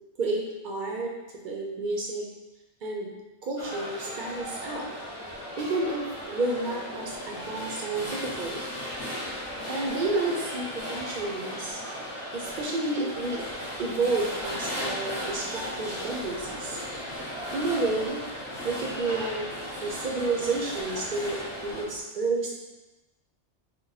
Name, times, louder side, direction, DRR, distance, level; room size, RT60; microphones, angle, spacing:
voice 1, 0.2-1.1 1.4-2.3 2.8-3.1 3.4-4.9 5.6-8.7 9.7-11.8 12.3-13.4 13.8-16.8 17.5-18.2 18.6-19.5 19.8-22.5, right 3 dB, 55° right, -1 dB, 0.6 m, -30 dB
sound 1, 3.6-21.8, equal, 25° left, 0.9 m, -36 dB
sound 2, 13.1-22.0, left 3 dB, 85° left, 1.0 m, -50 dB
2.9 x 2.1 x 3.9 m, 1.1 s
omnidirectional pair, 1.2 m